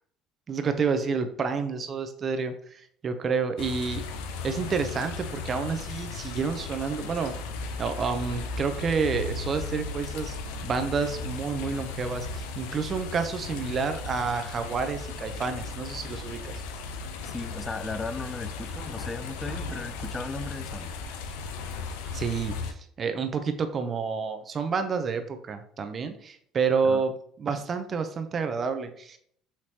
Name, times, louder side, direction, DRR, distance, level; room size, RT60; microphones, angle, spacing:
voice 1, 0.5-4.0 4.4-7.3 7.8-10.4 10.6-16.5 22.1-27.1 27.4-29.2, right 5 dB, 45° right, 8 dB, 0.6 m, -29 dB
sound 1, 3.6-22.7, left 4 dB, 85° left, 0.5 m, -36 dB
voice 2, 17.3-20.9 26.8-27.0, left 3 dB, 25° left, 12 dB, 0.3 m, -36 dB
5.8 x 3.0 x 2.8 m, 0.64 s
supercardioid pair, 75°, 0 cm